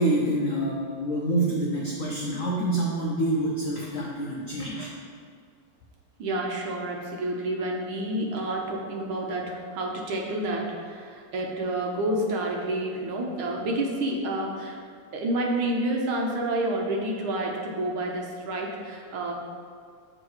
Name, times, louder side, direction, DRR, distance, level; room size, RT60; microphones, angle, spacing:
voice 1, 0.0-4.9, right 1 dB, 70° left, -3 dB, 0.7 m, -27 dB
voice 2, 6.2-14.8 15.1-19.3, right 1 dB, 70° right, 0 dB, 1.7 m, -29 dB
7.7 x 3.8 x 4.7 m, 2.2 s
omnidirectional pair, 2.4 m